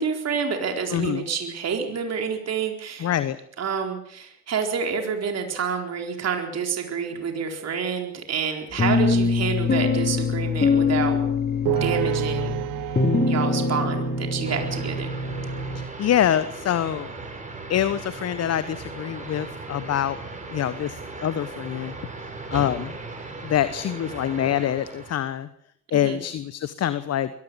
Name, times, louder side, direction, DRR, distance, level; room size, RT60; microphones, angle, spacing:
voice 1, 0.0-3.1 3.6-11.2 11.7-12.6 13.3-15.1 25.9-26.2, right 6 dB, 45° right, 3 dB, 4.1 m, -28 dB
voice 2, 0.9-1.2 3.0-3.4 15.7-17.1 17.7-20.2 20.5-21.9 22.5-23.0 23.4-25.5 25.9-27.3, left 10 dB, 45° left, 14 dB, 1.2 m, -25 dB
sound 1, 8.8-15.9, left 4 dB, 25° left, 3.3 m, -24 dB
sound 2, 11.6-15.0, right 17 dB, 60° right, 0.9 m, -30 dB
sound 3, 14.4-25.3, right 3 dB, 20° right, 6.5 m, -37 dB
23.0 x 17.0 x 7.0 m, 0.69 s
hypercardioid pair, 60°, 37 cm